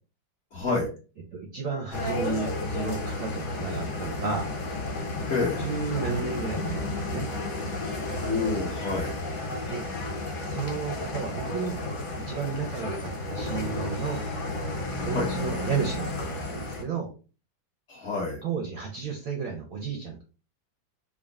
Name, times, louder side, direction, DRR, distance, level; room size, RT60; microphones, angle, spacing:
voice 1, 0.5-0.9 5.3-5.7 8.2-9.2 15.0-15.3 17.9-18.4, left 3 dB, 40° left, -4 dB, 1.2 m, -28 dB
voice 2, 1.3-4.5 5.6-7.3 9.7-9.9 10.4-11.8 12.1-14.2 15.0-17.1 18.4-20.2, right 5 dB, 65° right, 1 dB, 0.8 m, -32 dB
sound 1, 1.9-16.8, left 2 dB, 60° left, 1.4 m, -32 dB
3.7 x 2.2 x 3.5 m, 0.35 s
omnidirectional pair, 2.1 m